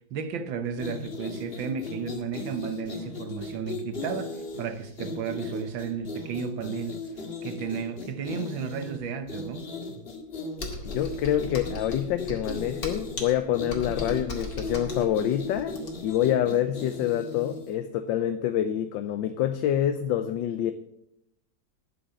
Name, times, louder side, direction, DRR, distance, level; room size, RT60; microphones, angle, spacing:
voice 1, 0.1-7.0 7.4-9.7, right 6 dB, 90° right, 1.8 m, -33 dB
sound 1, 0.7-17.8, left 2 dB, 35° left, 1.6 m, -37 dB
Computer keyboard, 10.6-16.2, left 2 dB, 50° left, 2.7 m, -37 dB
voice 2, 10.8-20.7, left 11 dB, 80° left, 1.4 m, -27 dB
11.0 x 7.0 x 8.3 m
omnidirectional pair, 2.0 m